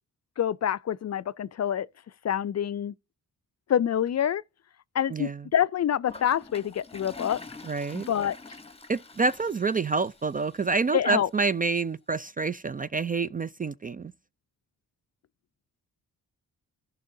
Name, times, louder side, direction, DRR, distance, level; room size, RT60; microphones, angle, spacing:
voice 1, 0.4-1.9 2.2-2.9 3.7-4.4 4.9-7.4 7.9-8.4 10.9-11.3, left 9 dB, 40° left, 0.4 m, -26 dB
Toilet flush, 6.1-11.1, left 3 dB, 15° left, 1.0 m, -46 dB
voice 2, 7.7-8.1 8.9-14.1, right 4 dB, 25° right, 0.3 m, -27 dB
14.5 x 5.5 x 2.7 m
supercardioid pair, 45°, 41 cm